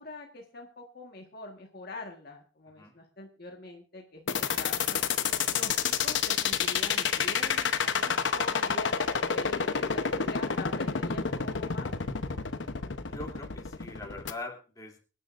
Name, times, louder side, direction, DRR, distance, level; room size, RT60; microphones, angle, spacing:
voice 1, 0.0-5.0 5.5-11.9, left 2 dB, 55° left, 2 dB, 1.6 m, -44 dB
sound 1, 4.3-14.3, left 6 dB, 75° left, 0.9 m, -28 dB
voice 2, 13.1-15.0, left 2 dB, 20° left, 0 dB, 3.0 m, -42 dB
24.5 x 10.0 x 2.6 m, 0.36 s
head